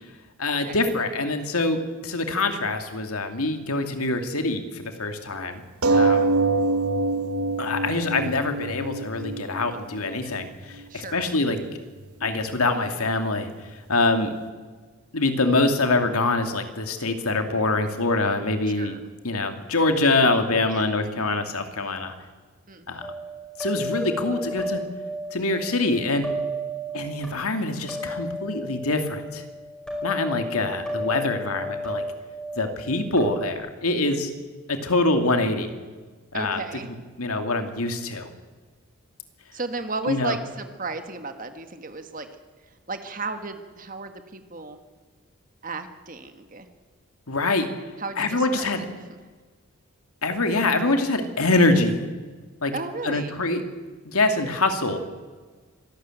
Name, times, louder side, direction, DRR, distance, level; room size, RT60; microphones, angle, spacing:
voice 1, 0.4-5.6 5.9-6.2 7.6-11.6 12.2-14.3 15.1-19.0 19.2-22.1 22.9-23.1 23.6-24.8 25.3-26.3 26.9-29.4 30.0-32.0 32.6-34.3 34.7-35.7 36.3-36.6 37.2-38.3 40.1-40.4 47.3-47.7 48.2-48.9 50.2-52.0 52.6-52.7 53.0-53.6 54.1-55.0, left 2 dB, 85° left, 6 dB, 2.4 m, -24 dB
sound 1, 5.8-10.8 11.6-11.7 12.0-12.1, right 3 dB, 90° right, 1.3 m, -24 dB
voice 2, 5.9-6.4 10.9-11.3 18.7-19.0 20.7-20.8 22.7-22.9 36.3-36.9 39.5-42.3 42.9-44.8 45.6-46.7 48.0-48.7 52.7-53.3, right 3 dB, 40° right, 8 dB, 1.6 m, -34 dB
sound 2, 23.0-33.5, equal, 5° left, 5.5 m, -33 dB
25.0 x 12.5 x 9.1 m, 1.4 s
head